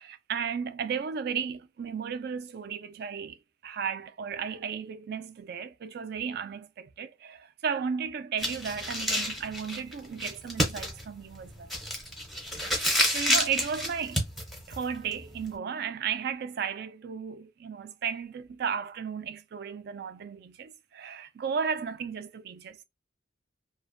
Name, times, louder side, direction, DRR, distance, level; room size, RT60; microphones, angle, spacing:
voice 1, 0.0-3.4 3.6-11.7 12.7-14.2 14.7-22.8, right 6 dB, 55° right, 0.3 m, -34 dB
sound 1, 8.4-15.5, equal, ahead, 0.6 m, -30 dB
2.5 x 2.1 x 2.5 m
head